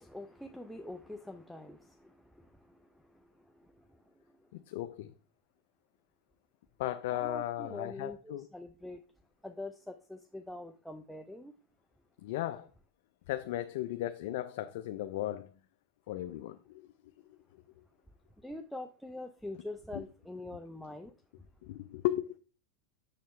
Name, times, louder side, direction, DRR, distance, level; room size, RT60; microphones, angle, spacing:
voice 1, 0.0-2.1 7.1-9.0 9.4-11.5 18.4-21.1, left 2 dB, ahead, 0.5 m, -44 dB
voice 2, 4.5-5.1 6.8-8.5 12.2-12.7 13.3-15.5 16.1-16.9 17.3-17.4 19.9-20.0 21.6-22.4, left 14 dB, 70° left, 0.4 m, -36 dB
6.7 x 6.7 x 3.1 m
supercardioid pair, 120°, 0 cm